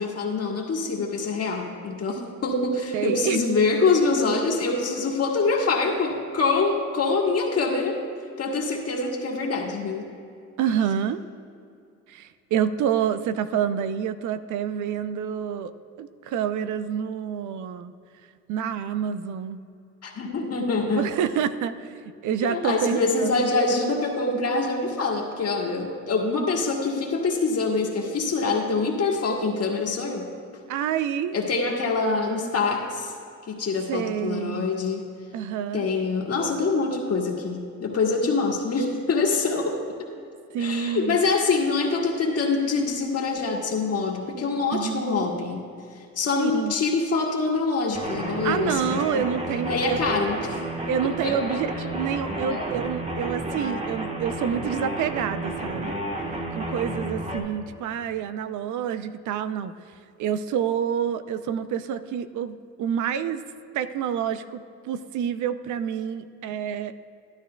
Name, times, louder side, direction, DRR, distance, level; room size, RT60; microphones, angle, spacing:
voice 1, 0.0-8.0 8.4-10.1 20.0-21.0 22.4-30.3 31.3-33.1 33.5-35.1 35.7-39.8 40.6-45.6 45.9-49.3 49.6-50.6 51.2-51.4 51.8-51.9 52.5-52.6, left 3 dB, 55° left, 0 dB, 1.8 m, -25 dB
voice 2, 2.9-3.4 10.6-11.2 12.1-17.9 18.5-19.6 20.9-23.5 30.7-31.4 33.9-34.7 35.3-35.9 40.5-41.2 44.7-45.1 46.4-46.7 48.4-50.0 50.9-56.0 56.5-59.7 60.2-63.4 63.7-66.9, right 8 dB, 80° right, 12 dB, 0.5 m, -28 dB
sound 1, 47.9-57.4, right 1 dB, 20° right, 1.3 m, -31 dB
12.5 x 12.0 x 2.3 m, 2.5 s
cardioid pair, 90°, 30 cm